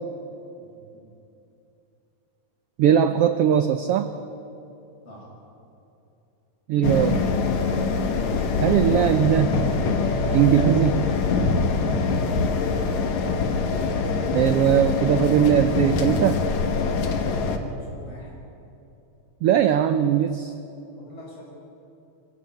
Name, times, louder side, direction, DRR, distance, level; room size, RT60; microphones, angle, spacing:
voice 1, 0.6-1.1 5.0-5.3 17.6-18.3 20.9-21.4, left 1 dB, 50° left, -3 dB, 7.4 m, -45 dB
voice 2, 2.8-4.1 6.7-7.2 8.6-9.7 10.3-11.1 14.3-16.5 19.4-20.5, right 10 dB, 80° right, 9 dB, 1.3 m, -20 dB
sound 1, 6.8-17.6, left 4 dB, 70° left, 2.6 m, -24 dB
25.5 x 15.5 x 8.4 m, 2.7 s
omnidirectional pair, 3.5 m